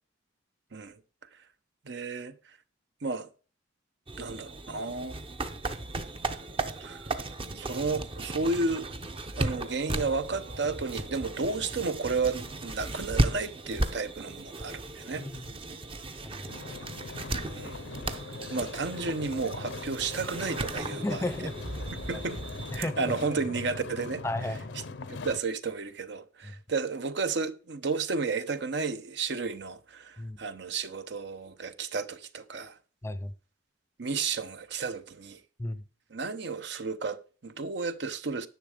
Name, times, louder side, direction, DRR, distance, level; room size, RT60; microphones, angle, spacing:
voice 1, 1.8-2.4 3.0-3.3 4.2-5.2 6.8-7.1 7.5-9.0 9.4-15.3 17.5-17.8 18.5-21.5 21.9-22.4 22.8-24.2 25.1-32.8 34.0-35.4 36.1-38.5, right 4 dB, 60° right, 0.8 m, -32 dB
sound 1, 4.1-22.8, right 2 dB, 30° right, 0.7 m, -35 dB
sound 2, 9.3-14.7, equal, 85° right, 2.9 m, -51 dB
voice 2, 15.2-15.5 16.2-16.8 20.9-21.6 22.1-22.3 22.7-23.1 24.2-24.8 26.4-26.5 30.2-30.4 33.0-33.3 35.6-35.8, left 1 dB, 15° left, 0.5 m, -34 dB
sound 3, 16.5-25.4, left 3 dB, 70° left, 0.6 m, -41 dB
10.5 x 6.5 x 5.0 m
head